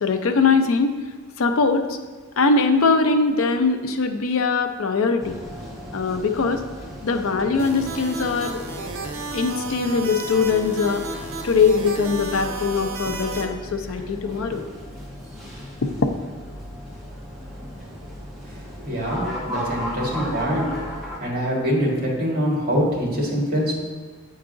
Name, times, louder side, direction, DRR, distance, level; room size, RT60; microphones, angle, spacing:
voice 1, 0.0-1.0 1.4-2.0 2.4-5.4 5.9-6.6 7.0-8.6 9.3-11.0 11.4-14.6 15.8-16.1, left 4 dB, 65° left, 7 dB, 0.5 m, -21 dB
sound 1, 5.2-21.2, equal, ahead, 0.9 m, -36 dB
sound 2, 7.6-13.5, right 2 dB, 65° right, 0.6 m, -33 dB
voice 2, 18.8-20.7 21.2-23.8, equal, 45° right, -3 dB, 1.5 m, -24 dB
8.0 x 4.7 x 2.5 m, 1.5 s
head